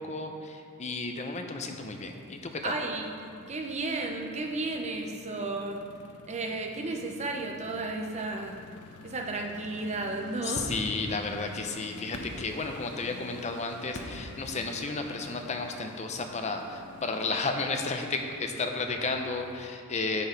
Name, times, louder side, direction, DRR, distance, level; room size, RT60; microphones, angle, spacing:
voice 1, 0.0-2.7 10.4-20.3, left 3 dB, 30° left, 4 dB, 0.6 m, -33 dB
sound 1, 1.7-19.7, left 5 dB, 85° left, 0.4 m, -50 dB
voice 2, 2.6-5.8 6.3-8.6 9.0-10.8, right 2 dB, 30° right, 2 dB, 0.7 m, -33 dB
sound 2, 10.5-11.4 12.0-13.2 13.9-14.6 16.1-16.2, left 1 dB, 60° left, 0.9 m, -41 dB
9.1 x 4.6 x 5.2 m, 2.4 s
head